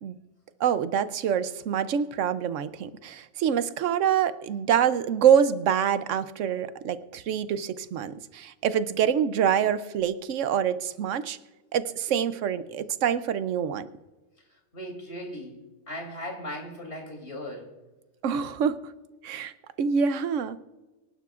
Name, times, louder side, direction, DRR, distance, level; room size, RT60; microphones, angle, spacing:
voice 1, 0.6-11.4 11.7-13.9 18.2-18.8 19.2-19.5 19.8-20.6, right 8 dB, 80° right, 13 dB, 1.0 m, -25 dB
voice 2, 14.7-15.6 15.9-17.7, equal, 60° left, 2 dB, 3.6 m, -37 dB
24.5 x 11.0 x 2.4 m, 1.2 s
omnidirectional pair, 1.3 m